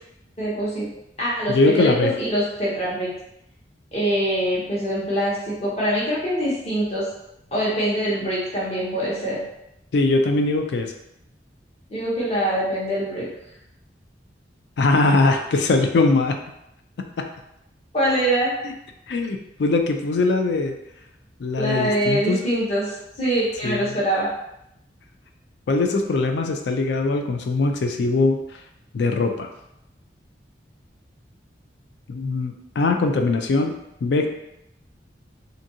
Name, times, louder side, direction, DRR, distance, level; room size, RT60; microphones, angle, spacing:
voice 1, 0.4-0.9 1.2-3.1 3.9-7.1 7.5-9.4 11.9-13.3 17.9-18.5 21.6-24.3, right 1 dB, 35° left, -7 dB, 0.9 m, -24 dB
voice 2, 1.5-2.1 9.9-10.9 14.8-16.4 17.2-17.3 18.6-18.7 19.1-20.7 21.4-22.4 23.6-23.8 25.7-28.4 28.9-29.5 32.1-33.7 34.0-34.3, left 3 dB, 65° left, 5 dB, 0.4 m, -21 dB
2.6 x 2.5 x 2.7 m, 0.82 s
head